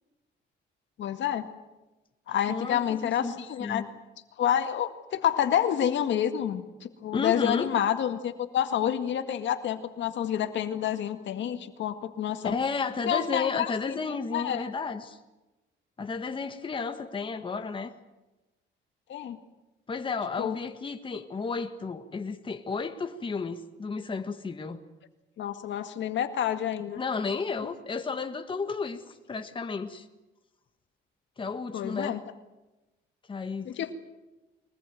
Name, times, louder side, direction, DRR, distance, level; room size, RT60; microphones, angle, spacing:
voice 1, 1.0-1.5 2.3-3.8 4.4-12.6 13.1-14.0 14.3-14.7 19.1-19.4 20.4-20.6 25.4-27.0 31.7-32.2 33.7-33.9, left 10 dB, 70° left, 8 dB, 1.9 m, -28 dB
voice 2, 2.5-3.9 7.1-7.7 12.4-15.2 16.0-17.9 19.9-24.8 27.0-30.1 31.4-32.2 33.3-33.7, left 4 dB, 25° left, 6 dB, 1.6 m, -33 dB
23.5 x 20.0 x 9.3 m, 1.1 s
cardioid pair, 120°, 20 cm